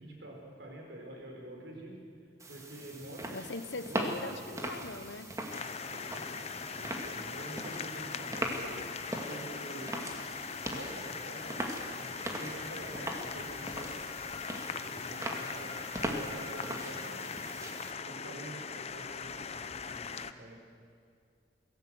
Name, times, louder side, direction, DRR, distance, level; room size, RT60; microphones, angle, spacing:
voice 1, 0.0-1.9 2.5-3.4 3.9-4.3 5.5-8.9 9.3-10.0 10.6-11.6 11.9-14.0 14.6-17.3 17.6-20.6, right 1 dB, 75° right, 1 dB, 4.6 m, -47 dB
sound 1, 2.4-17.9, right 1 dB, 15° right, 2.1 m, -40 dB
voice 2, 3.3-5.3, left 3 dB, 80° left, 13 dB, 1.0 m, -41 dB
sound 2, 5.5-20.3, left 6 dB, 35° left, 0.7 m, -40 dB
Wind instrument woodwind instrument, 12.0-18.3, left 2 dB, 20° left, 1.8 m, -54 dB
23.0 x 16.5 x 7.9 m, 2.3 s
head